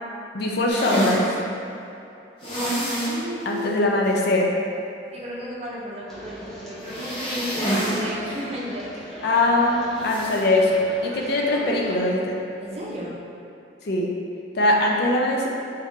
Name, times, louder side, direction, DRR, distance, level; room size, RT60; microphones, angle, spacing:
voice 1, 0.3-1.3 3.5-4.5 9.2-12.4 13.9-14.1 14.5-15.5, left 1 dB, 60° left, -1 dB, 0.5 m, -21 dB
sound 1, 0.7-1.2 2.4-3.2 3.6-3.7 4.1-4.2 6.8-8.0 8.3-8.4 10.0-10.4, equal, 30° left, 0.9 m, -26 dB
voice 2, 3.0-3.8 5.1-9.2 12.6-13.2, equal, 35° right, -6 dB, 0.6 m, -34 dB
sound 2, 6.1-12.0, equal, ahead, 0.7 m, -39 dB
4.2 x 2.4 x 3.6 m, 2.7 s
head